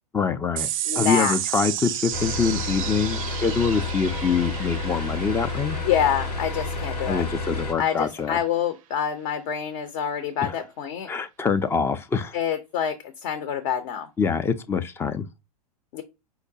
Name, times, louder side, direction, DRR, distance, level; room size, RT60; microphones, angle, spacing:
voice 1, 0.1-0.7 0.9-5.8 7.1-8.4 10.4-10.6 11.1-12.3 14.2-15.2, left 5 dB, 10° left, 0.3 m, -25 dB
sound 1, 0.6-7.3, right 12 dB, 60° right, 0.4 m, -32 dB
voice 2, 0.9-1.3 5.9-7.2 7.8-11.1 12.3-14.1 15.9-16.0, left 9 dB, 50° left, 0.6 m, -26 dB
sound 2, 2.1-7.7, left 3 dB, 85° left, 0.9 m, -30 dB
4.7 x 2.1 x 2.6 m
hypercardioid pair, 100°, 20 cm